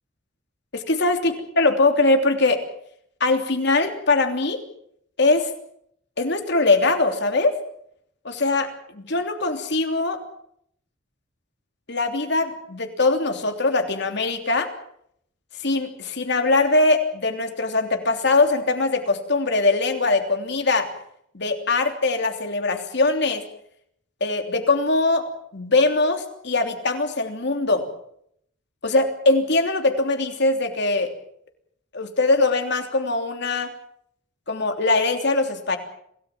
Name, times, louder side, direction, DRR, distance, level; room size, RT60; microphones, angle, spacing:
voice 1, 0.7-2.6 3.2-4.6 5.2-5.5 6.2-7.5 8.2-10.2 11.9-14.7 15.6-20.9 21.3-23.4 24.2-25.2 25.5-27.9 28.8-31.1 31.9-33.7 34.5-35.8, left 3 dB, 60° left, 5 dB, 3.2 m, -21 dB
27.0 x 17.5 x 7.4 m, 0.71 s
head